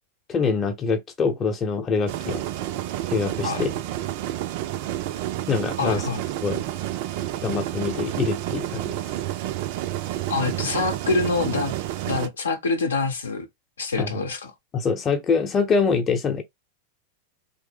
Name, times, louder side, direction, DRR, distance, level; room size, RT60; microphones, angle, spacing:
voice 1, 0.3-2.4 3.1-3.7 5.5-6.0 6.4-6.6 7.4-9.0 14.0-14.2 14.7-16.4, left 5 dB, 25° left, 0.7 m, -24 dB
sound 1, 2.1-12.3, right 13 dB, 50° right, 0.3 m, -30 dB
voice 2, 5.8-6.2 10.3-11.7 12.1-13.5 13.8-14.5, left 3 dB, 70° left, 0.7 m, -25 dB
3.1 x 2.0 x 3.6 m
figure-of-eight pair, 90°, 0 cm